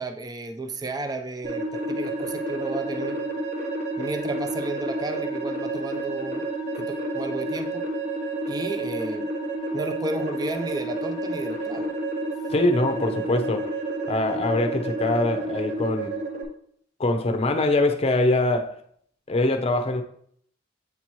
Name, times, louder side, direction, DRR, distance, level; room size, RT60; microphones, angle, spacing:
voice 1, 0.0-3.2 4.0-6.4 6.7-7.8 8.5-9.3 9.7-11.9, right 2 dB, 20° right, 0.4 m, -33 dB
sound 1, 1.4-16.4, right 2 dB, 40° right, 1.1 m, -30 dB
voice 2, 12.5-13.7 14.1-16.1 17.0-18.8 19.3-20.0, left 2 dB, 35° left, 0.6 m, -23 dB
8.2 x 2.8 x 4.5 m
head